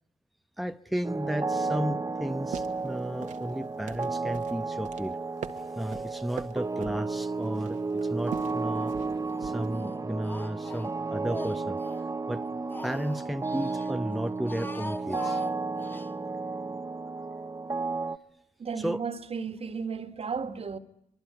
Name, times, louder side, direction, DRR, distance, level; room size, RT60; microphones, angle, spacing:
voice 1, 0.6-5.2 5.7-9.0 9.4-11.8 12.3-12.4 12.8-15.4 18.8-19.0, equal, ahead, 1.0 m, -33 dB
sound 1, 1.0-18.2, right 3 dB, 25° right, 1.2 m, -33 dB
sound 2, 2.3-9.8, right 8 dB, 80° right, 1.8 m, -44 dB
Speech, 8.2-9.0 9.3-12.1 12.4-13.9 14.3-16.1, left 1 dB, 15° left, 1.6 m, -44 dB
voice 2, 18.6-20.8, right 5 dB, 50° right, 2.0 m, -34 dB
25.0 x 22.0 x 10.0 m
supercardioid pair, 55°, 13 cm